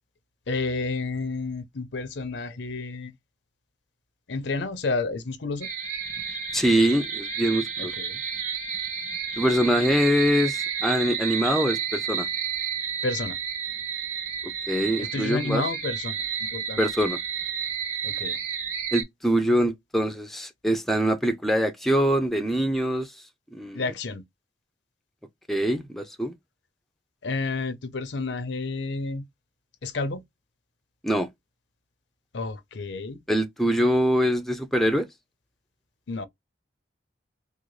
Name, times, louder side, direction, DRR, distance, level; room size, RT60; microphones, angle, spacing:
voice 1, 0.5-3.1 4.3-5.7 7.8-8.2 13.0-13.4 15.0-16.8 18.0-18.4 23.7-24.2 27.2-29.2 29.8-30.2 32.3-33.2 36.1-36.3, left 3 dB, 70° left, 0.6 m, -30 dB
sound 1, 5.6-19.0, right 7 dB, 40° right, 1.7 m, -31 dB
voice 2, 6.5-7.9 9.4-12.3 14.7-15.6 16.8-17.2 18.9-23.1 23.5-23.8 25.5-26.3 31.0-31.3 33.3-35.1, equal, ahead, 0.4 m, -24 dB
3.7 x 2.0 x 3.1 m
head